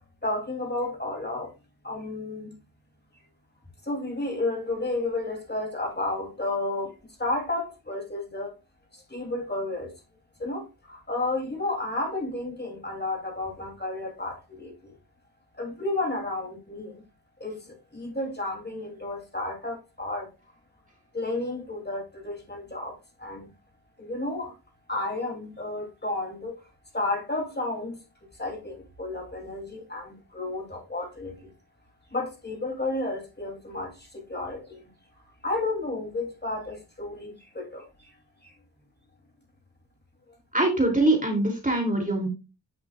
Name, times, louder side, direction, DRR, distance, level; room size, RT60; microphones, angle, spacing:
voice 1, 0.2-1.5 1.8-2.6 3.8-8.5 8.9-9.9 10.4-14.9 15.6-17.0 17.4-20.3 21.1-23.5 24.0-24.5 24.9-26.6 26.9-28.0 28.4-31.5 32.1-34.9 35.4-38.1 38.4-38.5, left 2 dB, 25° left, 3.3 m, -32 dB
voice 2, 40.5-42.3, right 2 dB, 20° right, 3.0 m, -23 dB
10.0 x 5.9 x 2.4 m
cardioid pair, 50°, 41 cm